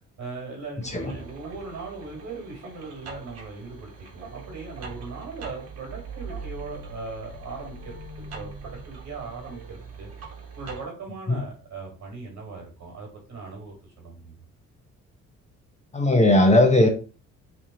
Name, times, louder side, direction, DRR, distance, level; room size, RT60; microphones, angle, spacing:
voice 1, 0.2-8.0 8.3-10.1 10.5-14.4, right 4 dB, 70° right, 0 dB, 1.8 m, -39 dB
voice 2, 0.8-1.1 11.3-11.4 15.9-16.9, left 1 dB, 25° left, 4 dB, 0.8 m, -18 dB
sound 1, 0.8-10.9, right 4 dB, 55° right, 1.4 m, -41 dB
3.3 x 2.7 x 3.9 m, 0.36 s
cardioid pair, 90°, 30 cm